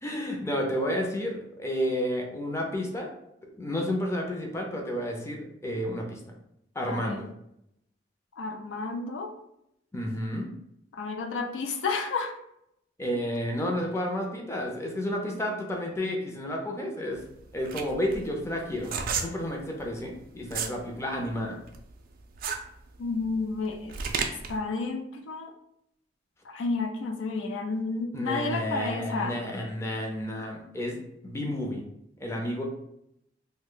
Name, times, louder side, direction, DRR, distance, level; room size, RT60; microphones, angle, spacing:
voice 1, 0.0-3.1 3.6-6.2 6.7-7.3 9.9-10.5 13.0-17.2 17.5-18.9 19.2-21.6 28.1-31.0 31.2-31.8 32.2-32.6, equal, 15° left, 0 dB, 0.5 m, -31 dB
voice 2, 6.9-7.2 8.4-9.3 10.9-12.3 23.0-24.0 24.5-25.5 26.4-29.4, left 3 dB, 75° left, 3 dB, 0.4 m, -31 dB
sound 1, 17.2-20.8 21.2-24.6, right 5 dB, 50° right, 0.3 m, -33 dB
2.7 x 2.1 x 3.7 m, 0.78 s
head